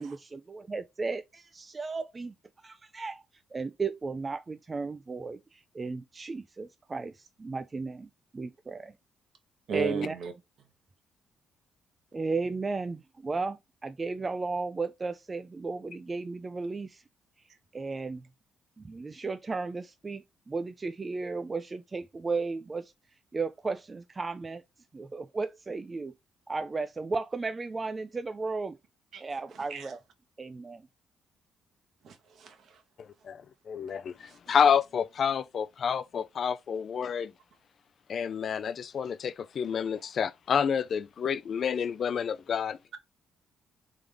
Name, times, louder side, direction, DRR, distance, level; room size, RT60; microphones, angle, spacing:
voice 1, 0.0-2.3 2.6-3.2 3.5-8.9 9.7-10.2 12.1-17.0 17.7-18.2 18.8-22.9 23.3-24.6 24.9-26.1 26.5-28.8 29.2-30.0 30.4-30.8, right 4 dB, 30° right, 0.3 m, -34 dB
voice 2, 9.7-10.3 29.1-29.2 29.5-29.9 32.0-32.8 34.3-34.5, right 6 dB, 65° right, 1.1 m, -37 dB
voice 3, 33.0-37.3 38.1-42.8, left 7 dB, 55° left, 0.3 m, -29 dB
3.6 x 3.3 x 3.4 m
cardioid pair, 90°, 0 cm